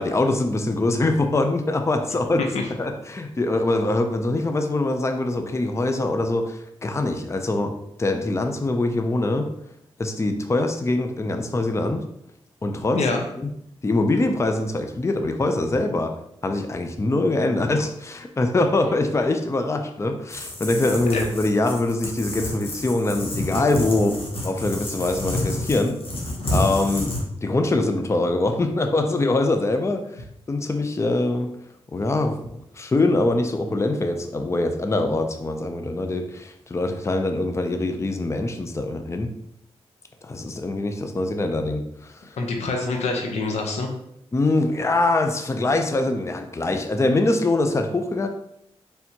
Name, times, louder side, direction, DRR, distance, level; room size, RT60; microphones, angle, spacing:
voice 1, 0.0-2.5 2.8-9.5 10.0-12.0 12.6-13.1 13.4-13.5 13.8-16.1 16.4-26.0 26.5-27.1 27.4-31.5 31.9-32.4 32.7-39.3 40.2-42.4 44.3-48.3, left 2 dB, 25° left, 5 dB, 0.5 m, -23 dB
voice 2, 12.9-13.2 21.1-21.2 42.4-43.9, left 3 dB, 90° left, 2 dB, 0.7 m, -25 dB
sound 1, 20.3-27.2, left 1 dB, 55° left, 1.2 m, -29 dB
4.3 x 3.4 x 2.8 m, 0.76 s
cardioid pair, 65°, 11 cm